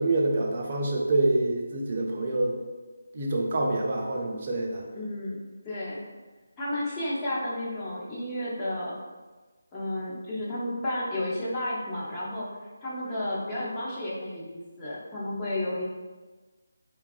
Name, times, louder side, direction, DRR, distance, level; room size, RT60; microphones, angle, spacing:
voice 1, 0.0-2.5 3.1-4.8, right 2 dB, 40° right, -1 dB, 0.5 m, -26 dB
voice 2, 4.9-5.4 5.6-6.0 6.6-8.9 9.7-12.5 12.8-15.8, left 1 dB, 15° left, -8 dB, 0.6 m, -32 dB
3.4 x 2.3 x 2.4 m, 1.3 s
figure-of-eight pair, 160°, 0 cm